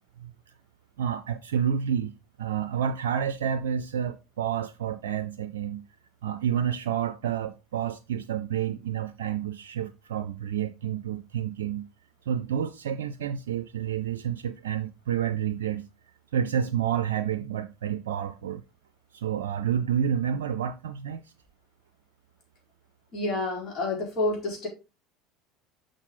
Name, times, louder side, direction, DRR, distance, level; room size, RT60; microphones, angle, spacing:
voice 1, 1.0-5.8 6.2-11.9 12.3-15.9 16.3-18.6 19.1-21.3, right 8 dB, 80° right, 0.4 m, -29 dB
voice 2, 23.1-24.7, left 2 dB, 45° left, 4.4 m, -29 dB
6.4 x 6.3 x 3.8 m
hypercardioid pair, 70°, 0 cm